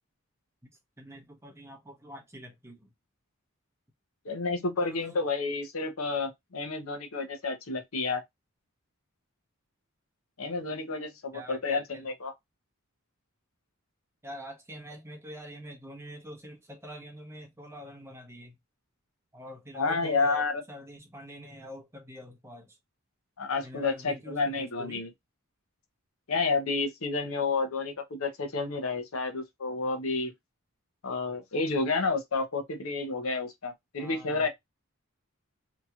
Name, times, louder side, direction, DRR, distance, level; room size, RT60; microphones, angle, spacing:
voice 1, 1.0-2.9 4.8-5.2 11.3-12.0 14.2-18.6 19.3-22.8 23.6-25.0 34.0-34.5, equal, 10° right, 0.8 m, -45 dB
voice 2, 4.2-8.2 10.4-12.3 19.7-20.6 23.4-25.1 26.3-30.3 31.0-34.5, left 3 dB, 75° left, 0.8 m, -30 dB
2.9 x 2.8 x 2.3 m
head